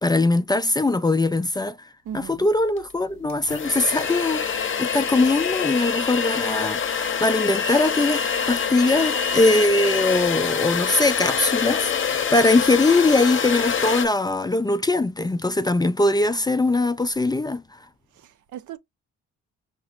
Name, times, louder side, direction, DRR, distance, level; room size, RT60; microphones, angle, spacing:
voice 1, 0.0-17.8, left 2 dB, 15° left, 0.4 m, -21 dB
voice 2, 2.0-2.5 18.1-18.8, right 10 dB, 75° right, 0.8 m, -37 dB
sound 1, 2.8-2.9 3.3-14.1, left 6 dB, 40° left, 0.8 m, -25 dB
5.6 x 3.0 x 2.4 m
cardioid pair, 90°, 30 cm